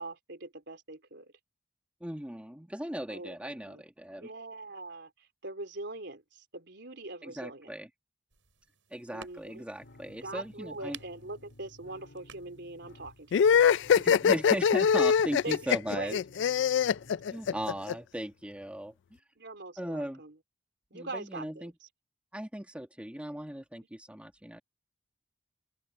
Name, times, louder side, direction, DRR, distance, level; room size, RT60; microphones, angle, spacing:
voice 1, 0.0-1.3 3.1-3.8 4.1-7.7 9.1-9.6 10.2-13.5 15.4-16.2 19.4-20.4 20.9-21.9, right 2 dB, 65° right, 4.0 m, -42 dB
voice 2, 2.0-4.3 7.2-7.9 8.9-11.0 14.0-16.1 17.3-19.2 19.8-20.2 20.9-21.7 22.3-24.6, equal, 5° right, 1.5 m, -38 dB
sound 1, 8.3-13.6, right 8 dB, 85° right, 6.7 m, -54 dB
sound 2, 9.8-17.8, left 1 dB, 85° left, 1.9 m, -55 dB
sound 3, 13.3-17.9, left 7 dB, 70° left, 0.3 m, -23 dB
open air
head